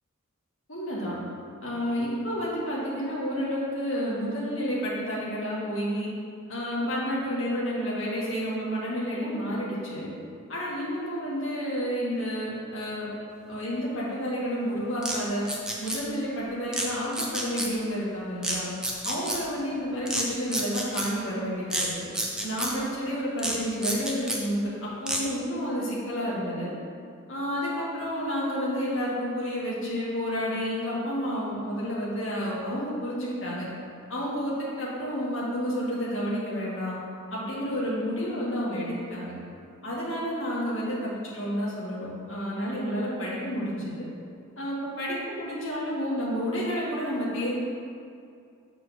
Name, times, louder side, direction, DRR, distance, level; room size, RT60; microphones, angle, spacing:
voice 1, 0.7-1.2 1.6-6.1 6.5-10.1 10.5-13.1 13.5-15.4 15.8-18.7 19.0-21.9 22.4-26.7 27.3-33.7 34.1-37.0 37.3-39.3 39.8-44.1 44.6-47.5, equal, 60° left, -7 dB, 2.0 m, -30 dB
sound 1, 15.0-15.2 15.4-16.0 16.7-16.9 17.1-17.7 18.4-18.6 18.8-19.4 20.1-20.2 20.5-21.1 21.7-21.9 22.1-22.7 23.4-23.6 23.8-24.4 25.1-25.2, right 1 dB, 5° right, 0.7 m, -29 dB
6.8 x 4.5 x 6.3 m, 2.4 s
head